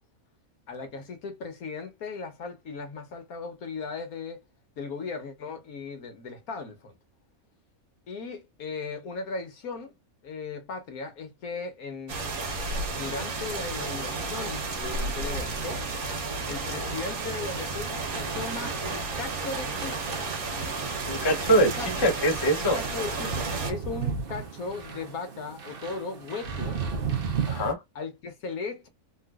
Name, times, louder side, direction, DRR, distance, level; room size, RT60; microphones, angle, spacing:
voice 1, 0.7-4.4 4.8-7.0 8.1-9.9 10.2-12.2 12.9-15.8 16.5-20.2 21.6-21.9 22.6-26.8 27.9-28.9, left 4 dB, 80° left, 1.5 m, -37 dB
sound 1, 12.1-23.7, right 3 dB, 80° right, 1.5 m, -32 dB
sound 2, 18.1-27.7, right 6 dB, 50° right, 0.8 m, -35 dB
voice 2, 21.1-22.8 27.5-27.8, right 1 dB, 25° left, 0.5 m, -23 dB
3.8 x 2.5 x 2.3 m
omnidirectional pair, 1.5 m